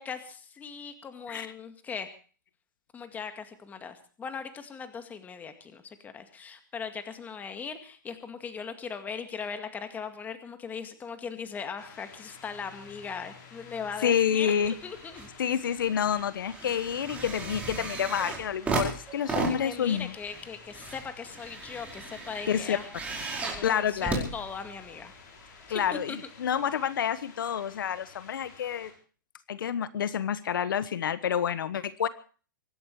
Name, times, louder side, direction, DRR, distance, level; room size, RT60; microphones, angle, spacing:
voice 1, 0.0-2.1 2.9-15.3 19.5-22.9 23.4-24.0 24.3-25.1 25.7-26.2, left 6 dB, 15° left, 8 dB, 2.1 m, -39 dB
sound 1, 11.8-28.9, left 5 dB, 60° left, 7.1 m, -52 dB
voice 2, 14.0-14.8 15.4-20.1 22.5-22.8 23.6-24.3 25.7-28.9 29.5-32.1, left 8 dB, 75° left, 15 dB, 1.2 m, -28 dB
sound 2, 14.6-15.3 15.7-25.1 25.8-25.9, right 3 dB, 10° right, 4.8 m, -35 dB
24.0 x 11.5 x 4.7 m, 0.40 s
hypercardioid pair, 145°, 11 cm